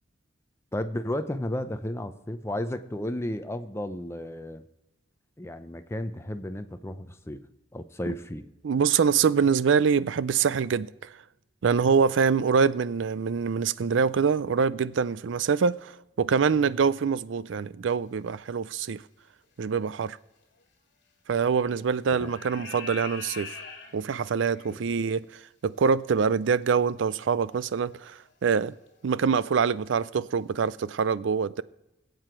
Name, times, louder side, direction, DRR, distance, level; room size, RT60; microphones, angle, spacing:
voice 1, 0.7-4.6 5.4-7.4 7.7-8.5 22.2-22.3 24.7-24.9, left 1 dB, 15° left, 0.6 m, -33 dB
voice 2, 8.6-10.9 11.6-19.0 19.6-20.2 21.3-23.5 23.9-25.2 25.6-28.7 29.0-31.6, right 6 dB, 75° right, 0.4 m, -25 dB
sound 1, 19.2-19.4 20.6-20.7 21.5-21.8 22.1-24.8 26.6-26.7 27.3-27.4 28.3-28.6 28.9-29.1 29.4-29.5, left 4 dB, 65° left, 2.2 m, -42 dB
21.0 x 7.9 x 4.5 m
head